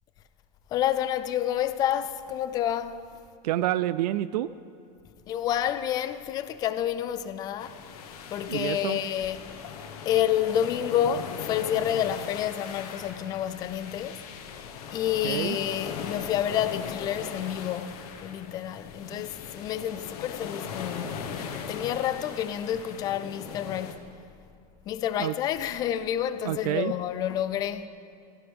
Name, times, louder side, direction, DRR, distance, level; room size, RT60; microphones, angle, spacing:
voice 1, 0.7-3.0 5.3-7.8 8.3-9.5 10.1-14.2 14.9-21.4 21.7-24.1 24.9-27.9, left 10 dB, 20° left, 0.4 m, -29 dB
voice 2, 3.4-4.5 8.5-9.0 15.2-15.6 19.1-19.2 25.2-25.3 26.4-26.9, right 14 dB, 85° right, 0.4 m, -28 dB
sound 1, 7.6-24.0, left 6 dB, 70° left, 1.4 m, -39 dB
17.0 x 16.5 x 3.5 m
supercardioid pair, 175°, 20 cm